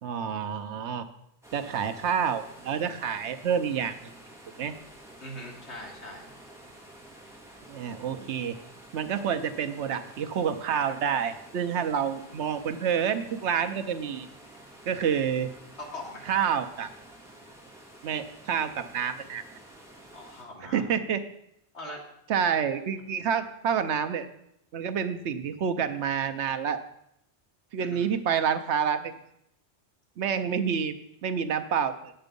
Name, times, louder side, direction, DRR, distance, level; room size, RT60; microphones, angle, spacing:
voice 1, 0.0-1.1 1.5-4.0 4.6-4.7 7.7-8.6 8.9-14.3 14.9-15.5 16.3-16.9 18.0-19.4 20.7-21.2 22.3-24.3 24.7-26.8 27.7-29.1 30.2-30.9 31.2-32.1, right 7 dB, 80° right, 10 dB, 1.0 m, -28 dB
sound 1, 1.4-20.4, right 1 dB, ahead, 1.8 m, -50 dB
voice 2, 5.2-6.3 15.8-16.3 20.1-20.8 21.7-22.0 27.8-28.1, left 1 dB, 75° left, -1 dB, 2.4 m, -41 dB
9.1 x 7.8 x 5.2 m, 0.76 s
omnidirectional pair, 1.1 m